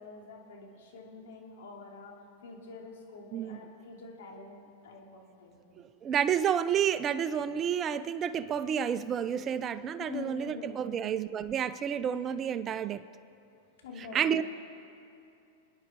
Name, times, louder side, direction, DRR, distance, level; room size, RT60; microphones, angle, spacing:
voice 1, 0.0-5.6 10.0-11.0 13.8-14.4, left 4 dB, 75° left, 3.3 m, -46 dB
voice 2, 5.8-13.0 14.0-14.4, right 8 dB, 30° right, 0.5 m, -30 dB
29.5 x 10.0 x 4.7 m
hypercardioid pair, 130°, 0 cm